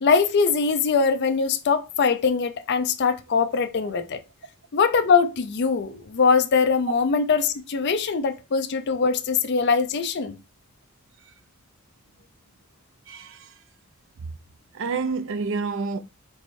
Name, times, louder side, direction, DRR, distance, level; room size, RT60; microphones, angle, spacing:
voice 1, 0.0-4.2 4.7-10.4, left 5 dB, 50° left, 0.5 m, -22 dB
voice 2, 13.1-13.5 14.2-14.3 14.7-16.0, right 4 dB, 60° right, 0.4 m, -28 dB
4.6 x 3.1 x 2.6 m
head